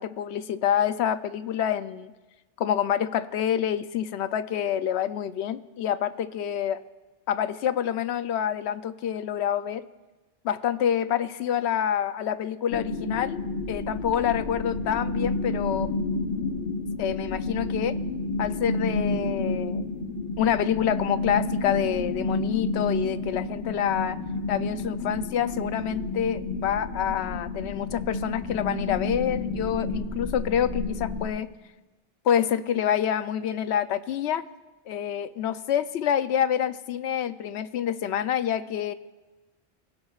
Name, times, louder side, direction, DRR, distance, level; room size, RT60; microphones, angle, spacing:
voice 1, 0.0-2.1 2.6-6.8 7.3-9.8 10.4-13.4 13.7-15.9 17.0-18.0 18.4-19.9 20.4-24.2 24.5-31.5 32.2-34.4 34.9-38.9, left 9 dB, 90° left, 13 dB, 0.9 m, -27 dB
sound 1, 12.7-31.3, left 2 dB, 60° left, 1.4 m, -30 dB
22.5 x 16.0 x 2.4 m, 1.2 s
omnidirectional pair, 1.1 m